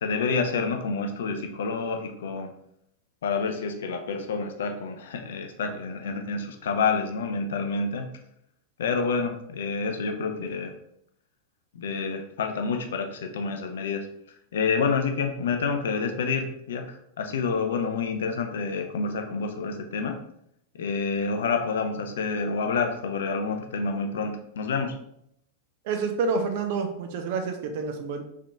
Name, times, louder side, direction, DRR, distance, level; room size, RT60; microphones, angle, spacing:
voice 1, 0.0-2.5 3.2-8.1 8.8-10.7 11.7-14.1 14.5-20.2 20.7-25.0, left 4 dB, 60° left, 5 dB, 0.4 m, -28 dB
voice 2, 25.9-28.2, right 4 dB, 50° right, 5 dB, 0.5 m, -28 dB
3.7 x 3.5 x 2.2 m, 0.74 s
figure-of-eight pair, 90°, 0 cm